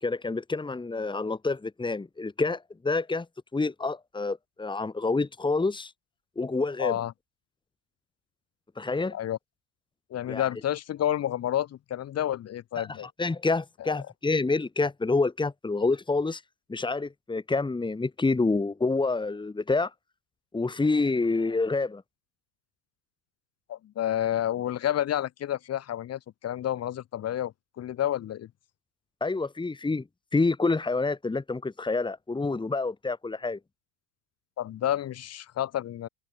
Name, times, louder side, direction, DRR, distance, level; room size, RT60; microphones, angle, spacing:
voice 1, 0.0-3.3 3.5-5.9 6.4-7.0 8.8-9.1 10.3-10.5 12.8-12.9 13.2-16.4 16.7-19.9 20.5-22.0 29.2-30.0 30.3-33.6, left 3 dB, 15° left, 3.0 m, -27 dB
voice 2, 6.8-7.1 9.1-9.4 10.1-13.1 13.8-14.0 23.7-28.5 34.6-36.1, left 11 dB, 40° left, 3.6 m, -30 dB
open air
hypercardioid pair, 75°, 37 cm